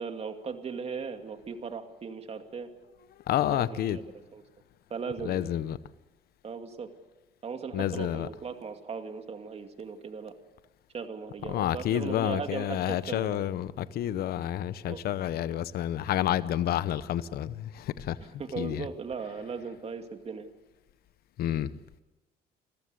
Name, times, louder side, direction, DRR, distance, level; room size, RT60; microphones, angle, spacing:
voice 1, 0.0-2.7 3.5-3.8 4.1-4.4 4.9-5.5 6.4-6.9 7.4-10.3 10.9-13.5 14.9-15.0 18.4-20.5, right 5 dB, 35° right, 2.5 m, -38 dB
voice 2, 3.3-4.0 5.2-5.8 7.7-8.3 11.5-18.3 18.6-18.8 21.4-21.7, left 12 dB, 65° left, 0.9 m, -29 dB
27.5 x 15.0 x 8.2 m
cardioid pair, 110°, 17 cm